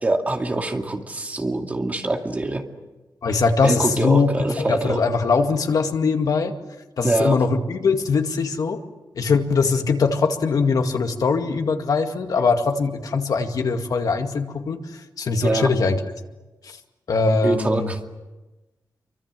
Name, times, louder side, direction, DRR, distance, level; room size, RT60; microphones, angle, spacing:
voice 1, 0.0-2.6 3.6-5.0 7.0-7.4 15.4-15.7 17.4-18.0, right 2 dB, 20° right, 3 dB, 2.4 m, -24 dB
voice 2, 3.2-4.3 4.6-6.5 7.0-8.8 9.2-14.8 15.2-16.0 16.6-16.8 17.1-17.9, left 4 dB, 65° left, 5 dB, 2.2 m, -21 dB
28.0 x 24.5 x 7.7 m, 1.1 s
wide cardioid pair, 175°, 7 cm